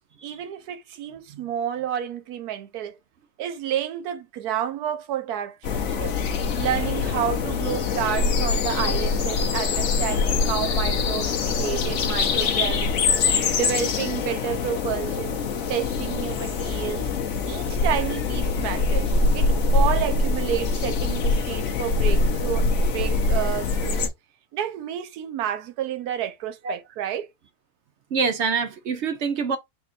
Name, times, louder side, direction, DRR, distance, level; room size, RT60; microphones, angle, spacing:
voice 1, 0.2-3.0 3.4-6.2 6.6-13.1 13.6-15.4 15.7-17.1 17.4-24.1 24.5-27.3, right 10 dB, 90° right, 1.2 m, -30 dB
sound 1, 5.6-24.1, left 4 dB, 60° left, 1.1 m, -24 dB
voice 2, 28.1-29.6, right 5 dB, 65° right, 0.7 m, -25 dB
4.3 x 2.4 x 4.1 m
omnidirectional pair, 1.6 m